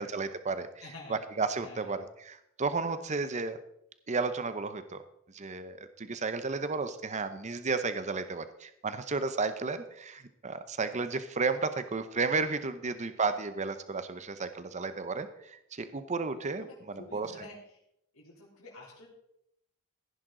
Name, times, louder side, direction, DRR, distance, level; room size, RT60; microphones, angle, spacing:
voice 1, 0.0-3.6 4.1-5.0 5.3-17.3, right 4 dB, 35° right, 11 dB, 0.7 m, -33 dB
voice 2, 0.8-1.2 1.6-2.0 12.8-13.0 16.6-17.6 18.1-19.1, left 2 dB, 80° left, -3 dB, 3.5 m, -49 dB
15.5 x 10.5 x 3.8 m, 0.75 s
head